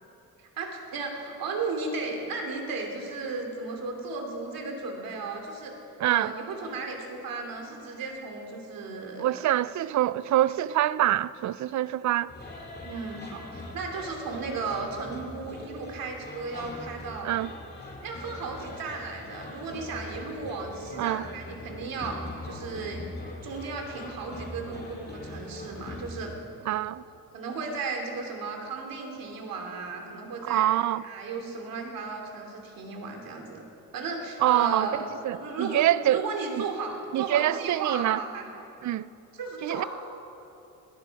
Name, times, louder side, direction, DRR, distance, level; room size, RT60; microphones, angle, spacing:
voice 1, 0.4-5.7 6.0-9.3 12.8-17.3 18.0-23.0 23.4-26.3 27.3-30.7 31.0-33.6 33.9-38.5 39.4-39.9, right 4 dB, 70° right, 2.8 m, -35 dB
voice 2, 6.0-6.3 9.2-12.3 17.2-17.5 21.0-21.3 26.7-27.0 30.4-31.0 34.4-34.9 35.2-36.2 36.5-36.6 37.1-38.2 38.8-39.1 39.6-39.8, right 13 dB, 55° right, 0.5 m, -25 dB
sound 1, 12.3-26.3, left 2 dB, 30° left, 2.4 m, -41 dB
20.0 x 13.0 x 4.8 m
cardioid pair, 95°, 35 cm